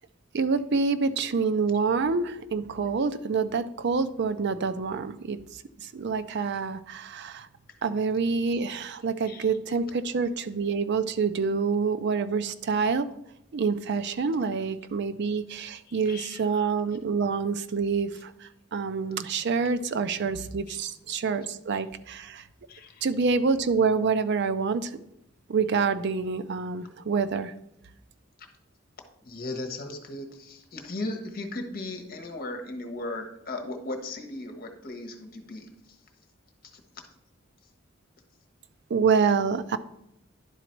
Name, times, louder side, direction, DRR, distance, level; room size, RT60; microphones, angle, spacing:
voice 1, 0.3-5.4 5.8-7.5 7.8-13.1 13.5-18.3 18.7-22.4 23.0-25.0 25.5-27.5 38.9-39.8, right 5 dB, 60° right, 11 dB, 0.5 m, -27 dB
voice 2, 9.2-9.8 14.4-14.5 15.9-16.4 18.1-18.2 20.7-20.8 21.7-21.8 22.7-23.0 29.2-35.7 36.7-36.8, left 2 dB, 50° left, 5 dB, 1.2 m, -37 dB
11.0 x 4.0 x 4.5 m, 0.80 s
head